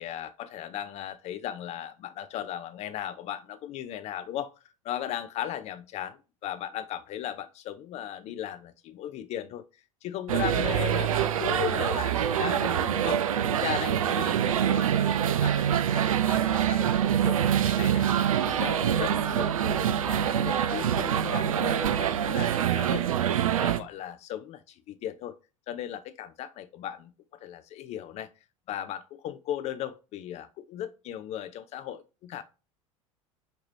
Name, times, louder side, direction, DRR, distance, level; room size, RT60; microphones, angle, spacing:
voice 1, 0.0-4.5 4.8-13.2 13.5-18.1 18.5-23.2 23.6-25.3 25.7-28.3 28.7-32.4, left 11 dB, 40° left, 0.4 m, -37 dB
sound 1, 10.3-23.8, right 9 dB, 75° right, 0.5 m, -25 dB
5.2 x 3.0 x 2.7 m
figure-of-eight pair, 75°, 18 cm